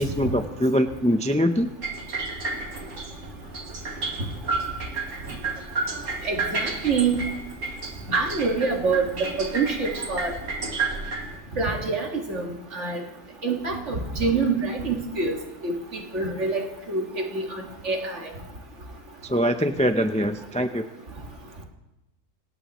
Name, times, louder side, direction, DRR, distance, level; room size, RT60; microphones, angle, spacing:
voice 1, 0.0-1.7 19.2-20.8, equal, 10° left, 8 dB, 0.3 m, -23 dB
sound 1, 1.8-11.4, right 3 dB, 80° right, 2.0 m, -31 dB
voice 2, 6.2-7.1 8.1-10.3 11.5-13.0 13.4-15.3 15.6-18.2, right 4 dB, 65° right, 1 dB, 2.3 m, -26 dB
26.0 x 18.5 x 3.1 m, 0.93 s
omnidirectional pair, 1.3 m